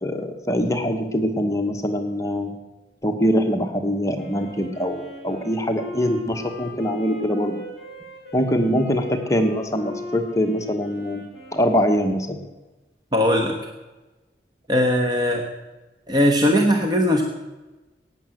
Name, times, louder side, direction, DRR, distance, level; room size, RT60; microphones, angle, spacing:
voice 1, 0.0-2.5 3.0-7.6 8.3-11.2 11.5-12.4, equal, 15° left, 3 dB, 1.1 m, -23 dB
Wind instrument woodwind instrument, 4.2-12.3, equal, ahead, 4.5 m, -39 dB
voice 2, 13.1-13.6 14.7-15.4 16.1-17.2, equal, 25° right, 2 dB, 1.1 m, -19 dB
15.5 x 9.3 x 7.8 m, 1.1 s
head